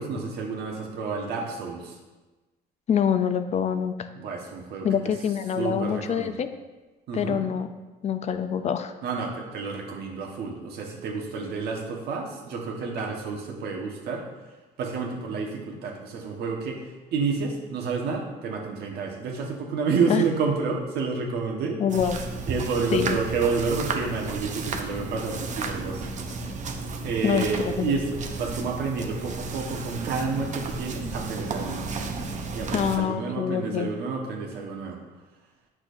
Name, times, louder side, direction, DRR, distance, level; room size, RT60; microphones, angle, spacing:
voice 1, 0.0-2.0 4.1-5.1 5.6-6.3 7.1-7.5 9.0-14.2 14.8-21.8 22.5-26.2 27.0-31.9 32.5-35.0, right 4 dB, 75° right, 0 dB, 1.3 m, -30 dB
voice 2, 2.9-4.1 4.8-6.5 7.1-7.7 8.0-8.9 20.1-20.2 21.8-22.2 22.9-23.2 27.2-27.9 32.7-33.9, left 8 dB, 40° left, 10 dB, 0.4 m, -25 dB
sound 1, 21.9-33.0, right 3 dB, 45° right, 0.7 m, -33 dB
8.4 x 6.2 x 2.6 m, 1.2 s
cardioid pair, 110°, 17 cm